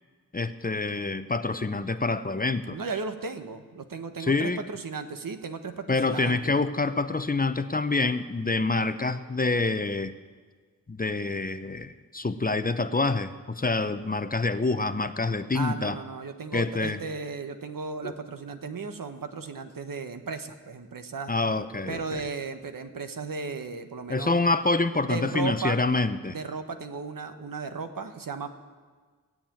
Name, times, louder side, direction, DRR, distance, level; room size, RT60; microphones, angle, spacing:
voice 1, 0.3-2.8 4.2-4.6 5.9-10.1 10.9-16.0 16.5-17.0 18.0-18.1 21.3-22.2 24.1-26.4, left 3 dB, 25° left, 11 dB, 0.6 m, -27 dB
voice 2, 2.7-6.5 15.5-21.3 21.9-24.4 25.0-25.8 26.3-28.5, right 4 dB, 70° right, 8 dB, 1.1 m, -35 dB
16.5 x 7.5 x 8.8 m, 1.5 s
wide cardioid pair, 75°, 34 cm